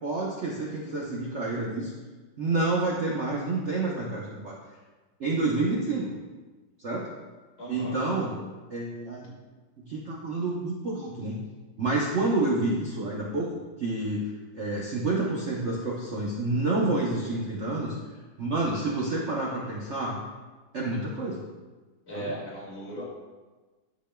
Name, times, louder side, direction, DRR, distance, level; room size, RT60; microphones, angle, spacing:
voice 1, 0.0-1.9 2.4-4.6 5.2-6.1 6.8-7.1 7.7-8.3 8.7-9.3 9.8-11.4 11.8-13.5 13.8-18.0 18.4-20.1 20.7-21.4 22.1-22.3, right 2 dB, 55° right, -4 dB, 0.8 m, -29 dB
voice 2, 7.6-7.9 22.1-23.0, right 1 dB, 30° left, -7 dB, 2.3 m, -37 dB
11.0 x 5.2 x 2.2 m, 1.3 s
omnidirectional pair, 2.2 m